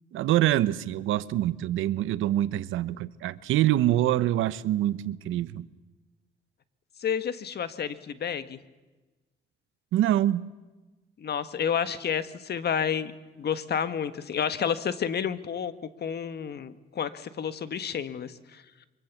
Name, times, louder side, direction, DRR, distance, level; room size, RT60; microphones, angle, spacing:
voice 1, 0.1-5.7 9.9-10.4, right 13 dB, 85° right, 16 dB, 0.9 m, -25 dB
voice 2, 7.0-8.6 11.2-15.7 16.0-18.9, left 8 dB, 55° left, 12 dB, 1.6 m, -30 dB
24.5 x 24.0 x 7.3 m, 1.2 s
cardioid pair, 90°, 20 cm